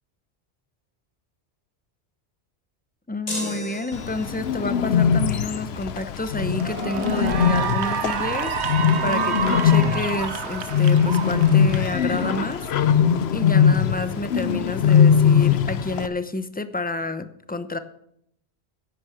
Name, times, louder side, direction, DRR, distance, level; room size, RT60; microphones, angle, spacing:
voice 1, 3.1-8.5 9.0-12.6 13.3-17.8, left 2 dB, 10° left, 11 dB, 0.6 m, -29 dB
sound 1, 3.3-4.6, left 1 dB, 35° left, 2.9 m, -34 dB
Bird, 3.9-16.1, left 8 dB, 70° left, 0.9 m, -21 dB
Cheering / Applause, 5.8-6.0 6.5-13.0, right 7 dB, 90° right, 1.2 m, -29 dB
10.5 x 10.0 x 7.1 m, 0.74 s
omnidirectional pair, 1.1 m